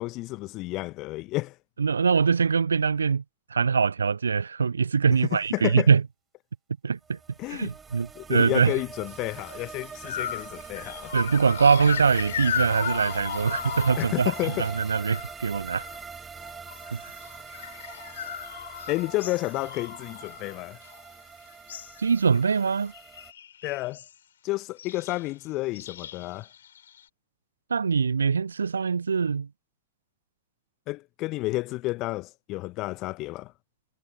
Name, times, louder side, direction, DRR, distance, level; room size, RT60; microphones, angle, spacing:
voice 1, 0.0-1.6 5.5-5.9 7.4-7.7 8.1-11.1 14.0-14.7 18.9-20.8 23.6-24.0 24.4-26.5 30.9-33.5, left 20 dB, 40° left, 1.4 m, -31 dB
voice 2, 1.8-3.2 3.5-6.0 6.8-7.2 7.5-8.7 11.1-14.3 14.6-15.9 16.9-17.1 22.0-22.9 27.7-29.5, right 5 dB, 75° right, 0.5 m, -23 dB
sound 1, 7.1-23.3, right 5 dB, 15° right, 7.3 m, -43 dB
sound 2, 9.4-9.5 10.0-16.1 16.4-21.2 21.5-22.0 22.3-22.6 22.9-24.1 24.8-25.3 25.7-27.0, left 9 dB, 65° left, 6.1 m, -37 dB
figure-of-eight pair, 90°, 0 cm